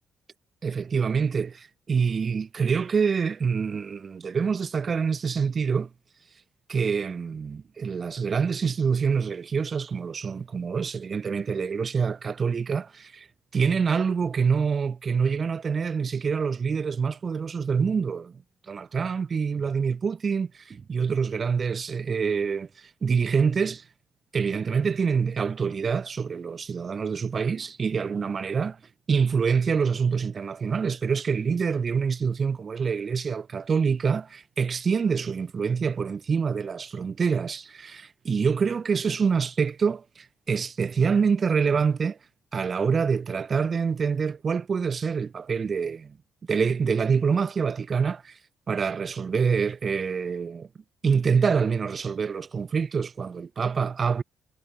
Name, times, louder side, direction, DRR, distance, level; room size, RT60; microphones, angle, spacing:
voice 1, 0.6-5.9 6.7-13.3 13.5-18.4 18.7-23.8 24.3-28.8 29.1-42.2 42.5-46.2 46.5-48.4 48.7-50.7 51.0-54.2, right 6 dB, 40° right, 1.2 m, -26 dB
figure-of-eight pair, 40°, 0 cm